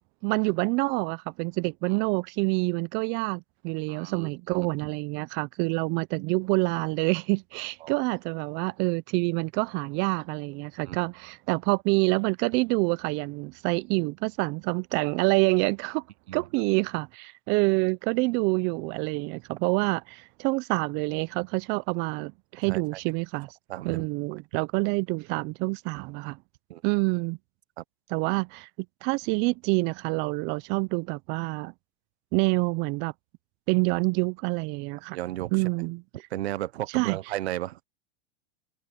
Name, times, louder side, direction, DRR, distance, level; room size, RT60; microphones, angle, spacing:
voice 1, 0.2-16.0 16.3-23.5 23.8-26.4 26.8-27.4 28.1-28.7 29.0-31.7 32.3-33.1 33.7-35.2 35.5-36.0 36.9-37.2, right 27 dB, 35° right, 0.4 m, -27 dB
voice 2, 3.9-4.7 7.8-8.0 10.8-11.0 16.3-16.4 22.7-22.8 23.7-24.1 26.7-26.8 27.8-27.9 35.1-35.5 36.3-37.8, right 14 dB, 85° right, 0.9 m, -34 dB
supercardioid pair, 130°, 32 cm